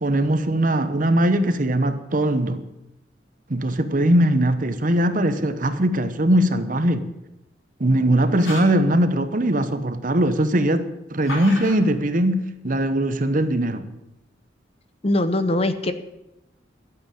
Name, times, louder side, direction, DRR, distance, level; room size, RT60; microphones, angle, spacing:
voice 1, 0.0-2.6 3.5-7.1 7.8-13.8, right 1 dB, 45° right, 0.9 m, -20 dB
Sword Simulations, 8.3-8.8 11.2-11.8, left 1 dB, 90° left, 4.6 m, -33 dB
voice 2, 15.0-15.9, left 1 dB, 30° left, 0.8 m, -21 dB
12.5 x 8.0 x 8.5 m
head